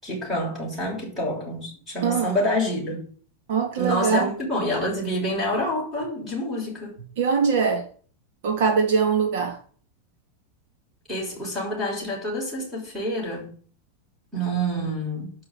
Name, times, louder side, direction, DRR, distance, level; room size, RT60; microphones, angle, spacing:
voice 1, 0.0-3.1 3.8-6.9 11.1-13.5 14.3-15.3, equal, 5° right, 6.6 m, -27 dB
voice 2, 2.0-2.3 3.5-4.3 7.2-7.9 8.4-9.6, right 6 dB, 60° right, 2.1 m, -22 dB
12.0 x 5.9 x 8.4 m
supercardioid pair, 175°, 0 cm